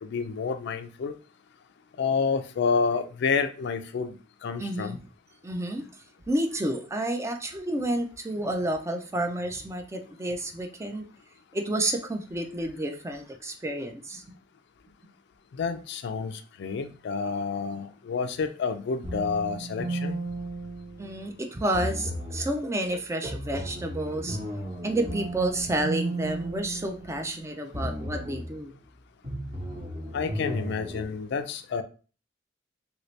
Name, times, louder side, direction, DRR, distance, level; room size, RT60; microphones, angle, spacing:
voice 1, 0.0-1.1 2.0-4.1 4.4-5.0 15.6-16.3 16.6-20.2 30.1-31.8, left 5 dB, 65° left, 8 dB, 0.3 m, -29 dB
voice 2, 4.6-5.0 5.4-5.9 6.3-11.1 11.5-14.2 15.0-15.1 21.0-24.4 24.8-28.7, right 1 dB, 15° right, 5 dB, 0.4 m, -30 dB
sound 1, 19.0-21.3 21.7-22.6 23.2-27.4 27.7-28.6 29.2-31.0, right 1 dB, 35° right, 1.0 m, -34 dB
2.9 x 2.7 x 3.1 m, 0.37 s
head